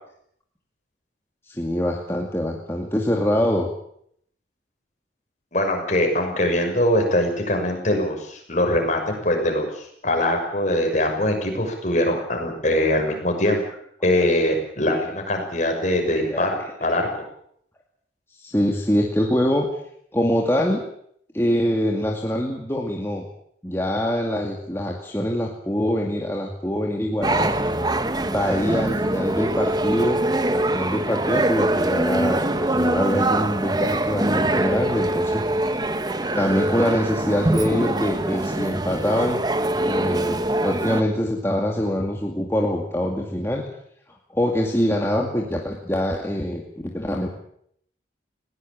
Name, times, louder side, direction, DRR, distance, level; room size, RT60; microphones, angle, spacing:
voice 1, 1.5-3.7 14.1-14.2 14.9-15.1 16.3-16.5 18.3-19.7 20.1-20.8 21.3-23.3 23.6-27.5 28.2-30.2 30.5-35.4 36.4-39.4 39.8-43.6 44.3-47.3, equal, 15° left, 0 dB, 2.3 m, -24 dB
voice 2, 5.5-13.6 14.0-17.2, left 1 dB, 40° left, 3 dB, 6.3 m, -22 dB
sound 1, 27.2-41.0, right 1 dB, 20° right, 1.2 m, -23 dB
20.5 x 18.0 x 8.8 m, 0.69 s
head